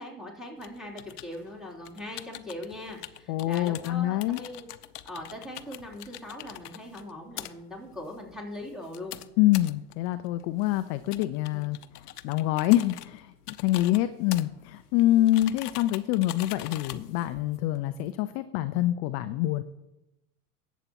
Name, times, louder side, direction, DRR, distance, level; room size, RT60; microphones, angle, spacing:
voice 1, 0.0-4.7 5.0-9.2 11.5-11.6 13.8-14.0, left 1 dB, ahead, -4 dB, 3.1 m, -41 dB
sound 1, 0.6-18.1, left 13 dB, 70° left, 0.7 m, -45 dB
voice 2, 3.3-4.4 9.4-11.8 12.2-19.6, left 15 dB, 35° left, 11 dB, 0.5 m, -26 dB
18.0 x 8.1 x 2.9 m, 0.96 s
hypercardioid pair, 95°, 48 cm